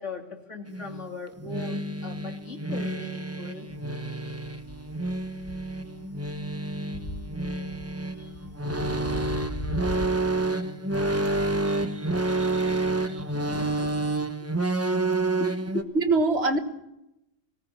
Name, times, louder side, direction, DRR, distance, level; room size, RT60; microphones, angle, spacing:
voice 1, 0.0-3.7 8.2-8.4 15.4-15.9, left 3 dB, 75° left, 3 dB, 3.1 m, -38 dB
sound 1, 0.7-15.8, right 2 dB, 15° right, 1.1 m, -29 dB
sound 2, 3.6-10.1, left 1 dB, 50° left, 2.9 m, -39 dB
voice 2, 11.6-12.8 13.1-13.2 16.0-16.6, right 3 dB, 60° right, 8 dB, 1.8 m, -27 dB
19.5 x 18.0 x 8.4 m, 0.87 s
omnidirectional pair, 1.2 m